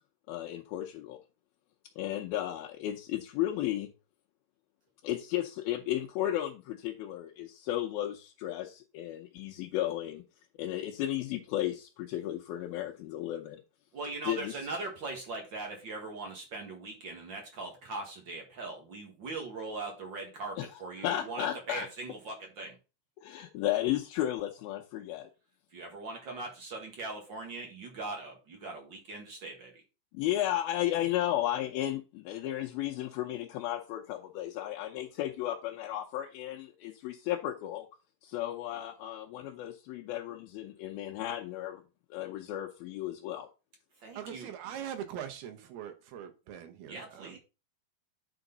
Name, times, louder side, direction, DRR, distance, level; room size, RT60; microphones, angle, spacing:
voice 1, 0.3-1.2 2.0-3.9 5.0-10.2 10.6-13.6 14.2-14.6 20.6-21.9 23.2-25.3 30.1-37.9 38.2-41.8 42.1-43.5, left 13 dB, 80° left, 2.6 m, -34 dB
voice 2, 13.9-22.8 25.7-29.8 44.0-44.5 46.9-47.4, right 3 dB, 45° right, 1.5 m, -40 dB
voice 3, 44.2-47.4, right 9 dB, 90° right, 3.1 m, -42 dB
9.7 x 5.1 x 4.0 m
omnidirectional pair, 4.3 m